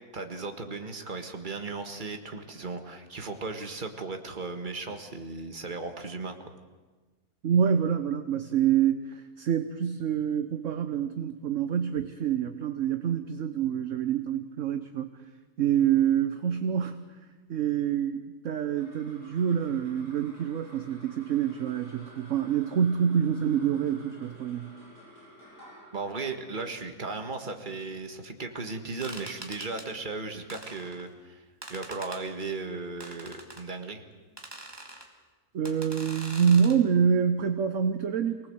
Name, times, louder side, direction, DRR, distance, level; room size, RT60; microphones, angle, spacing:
voice 1, 0.1-6.4 25.9-34.0, right 3 dB, 30° right, 6 dB, 1.8 m, -36 dB
voice 2, 7.4-15.1 15.6-17.1 17.5-24.7 35.5-38.5, right 8 dB, 55° right, 9 dB, 1.2 m, -26 dB
sound 1, 18.5-29.1, equal, 85° left, 7.8 m, -53 dB
sound 2, 29.0-29.9 30.5-31.1 31.6-32.2 33.0-33.6 34.4-35.1 35.6-36.8, right 1 dB, 15° right, 2.3 m, -43 dB
24.0 x 19.0 x 7.9 m, 1.3 s
omnidirectional pair, 1.7 m